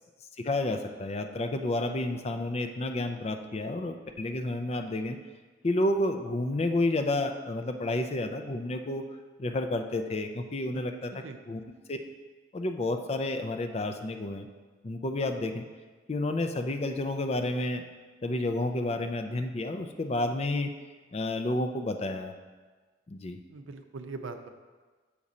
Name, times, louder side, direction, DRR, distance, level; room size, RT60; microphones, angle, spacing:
voice 1, 0.4-5.2 5.6-9.0 9.4-11.1 11.4-11.6 11.9-12.0 12.5-14.5 14.8-15.6 16.1-17.8 18.2-20.7 21.1-22.3 23.1-23.4, left 2 dB, 30° left, 6 dB, 0.4 m, -30 dB
voice 2, 23.5-24.5, right 3 dB, 80° right, 7 dB, 0.6 m, -41 dB
7.2 x 4.2 x 5.0 m, 1.4 s
head